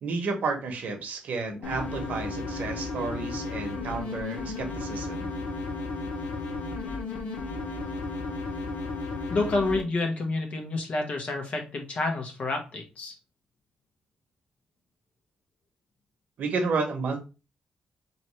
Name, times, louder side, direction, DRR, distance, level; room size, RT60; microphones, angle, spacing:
voice 1, 0.0-5.3 16.4-17.2, right 4 dB, 75° right, 4 dB, 1.1 m, -31 dB
sound 1, 1.6-9.8, left 3 dB, 85° left, 0.9 m, -34 dB
voice 2, 9.3-13.1, left 2 dB, 55° left, 3 dB, 1.3 m, -29 dB
4.3 x 3.2 x 3.1 m, 0.30 s
cardioid pair, 95°, 3 cm